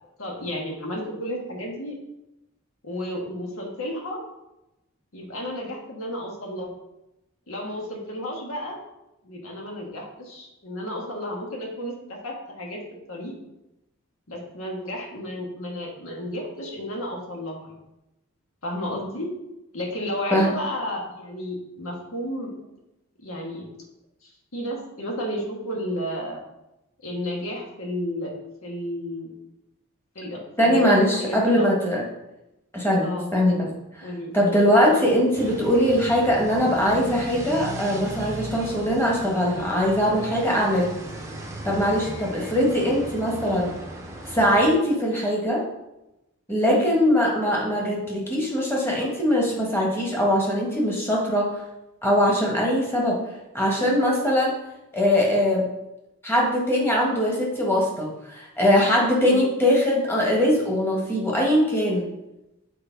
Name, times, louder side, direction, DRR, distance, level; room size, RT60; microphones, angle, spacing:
voice 1, 0.2-1.9 2.8-4.2 5.1-6.7 7.5-8.8 9.2-12.8 13.1-13.3 14.3-17.7 18.6-19.3 19.7-22.5 23.2-23.6 24.2-26.4 27.0-28.3 28.6-29.3 30.1-31.7 33.0-33.3 33.6-33.7 34.0-34.3 34.8-35.1 46.6-46.9 59.2-59.4, equal, 80° left, -1 dB, 1.7 m, -32 dB
voice 2, 30.6-32.0 32.7-33.7 33.9-34.1 34.3-40.9 41.6-43.7 44.3-45.6 46.5-51.5 52.0-53.2 53.5-54.6 54.9-55.7 56.2-62.0, equal, 10° left, -2 dB, 1.4 m, -21 dB
sound 1, 35.3-44.8, right 1 dB, 15° right, 0.7 m, -37 dB
6.8 x 4.3 x 4.6 m, 0.93 s
head